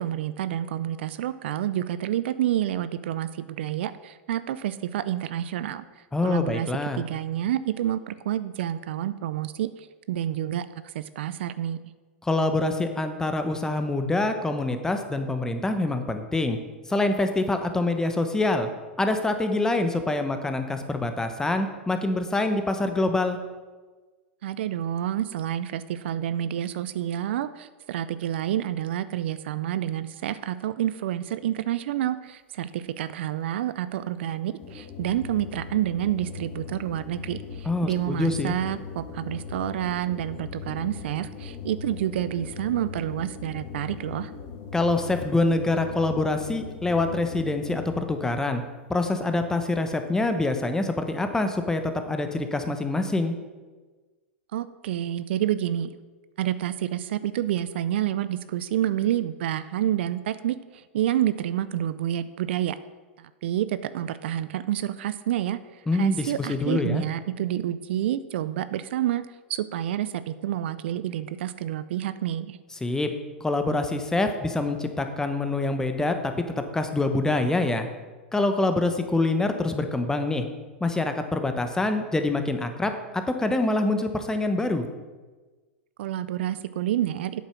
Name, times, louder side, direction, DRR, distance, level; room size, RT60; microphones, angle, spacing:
voice 1, 0.0-5.8 6.2-6.7 6.9-11.8 24.4-44.3 54.5-56.0 56.4-62.8 63.2-72.6 86.0-87.4, right 12 dB, 65° right, 14 dB, 0.5 m, -29 dB
voice 2, 6.1-7.0 12.2-16.6 16.9-18.7 19.0-23.4 37.7-38.5 44.7-48.6 48.9-53.4 65.9-67.0 72.8-73.1 73.4-77.9 78.3-80.5 80.8-84.8, left 2 dB, 10° left, 7 dB, 1.0 m, -25 dB
sound 1, 34.6-48.3, left 6 dB, 45° left, 1.6 m, -39 dB
8.4 x 7.3 x 5.9 m, 1.3 s
hypercardioid pair, 105°, 6 cm